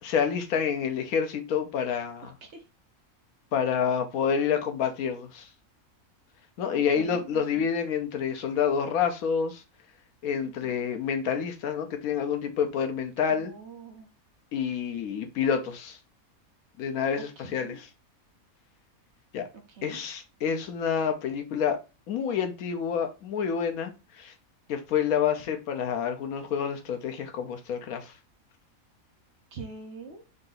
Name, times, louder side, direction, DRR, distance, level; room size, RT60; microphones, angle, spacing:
voice 1, 0.0-2.4 3.5-5.5 6.6-9.6 10.2-13.5 14.5-16.0 16.8-17.9 19.3-19.5 19.8-21.8 22.1-24.3 24.7-28.1, left 7 dB, 80° left, 1.2 m, -28 dB
voice 2, 2.2-2.6 6.7-7.7 10.4-10.7 13.3-14.1 17.5-17.8 19.5-20.0 29.5-30.2, right 4 dB, 55° right, 1.0 m, -44 dB
3.9 x 2.7 x 3.9 m
omnidirectional pair, 1.5 m